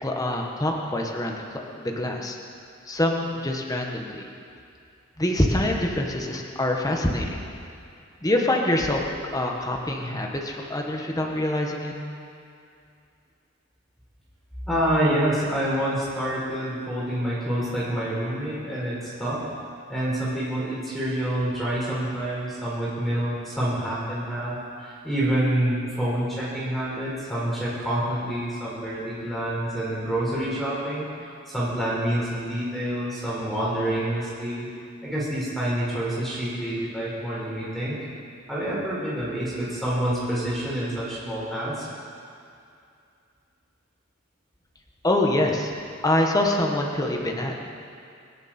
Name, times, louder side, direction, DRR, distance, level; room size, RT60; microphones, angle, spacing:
voice 1, 0.0-1.4 1.8-2.4 2.9-4.3 5.2-7.4 8.2-9.0 9.3-11.9 45.0-45.7 46.0-47.7, left 1 dB, 20° left, 0 dB, 1.4 m, -25 dB
voice 2, 14.7-19.4 19.9-31.1 31.4-34.7 35.0-38.0 38.5-41.9, right 1 dB, ahead, -9 dB, 4.7 m, -27 dB
25.5 x 11.0 x 4.5 m, 2.5 s
head